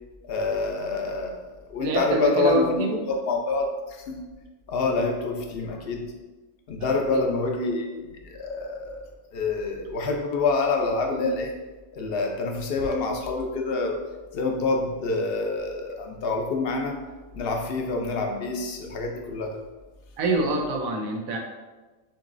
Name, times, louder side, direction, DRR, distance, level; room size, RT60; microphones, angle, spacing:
voice 1, 0.3-4.2 4.7-6.1 6.7-11.5 11.9-14.0 14.3-17.0 17.3-19.6, left 3 dB, 55° left, 2 dB, 0.8 m, -27 dB
voice 2, 1.8-3.0 6.8-7.3 20.2-21.4, right 2 dB, 85° right, 2 dB, 1.2 m, -26 dB
6.9 x 3.0 x 2.6 m, 1.2 s
omnidirectional pair, 1.4 m